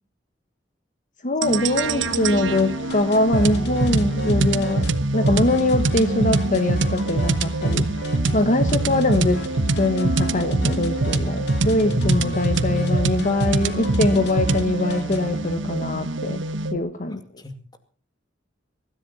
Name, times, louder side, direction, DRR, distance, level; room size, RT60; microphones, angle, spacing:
voice 1, 1.2-7.9 8.3-9.4 9.7-16.4 16.7-17.2, left 2 dB, 45° left, 8 dB, 1.3 m, -22 dB
sound 1, 1.4-16.8, right 2 dB, 90° right, 1.1 m, -24 dB
sound 2, 1.8-15.5, left 1 dB, 65° left, 2.8 m, -36 dB
voice 2, 8.4-8.9 11.9-12.3 17.4-17.8, left 1 dB, 20° left, 8 dB, 2.2 m, -31 dB
23.5 x 13.5 x 4.2 m, 0.38 s
head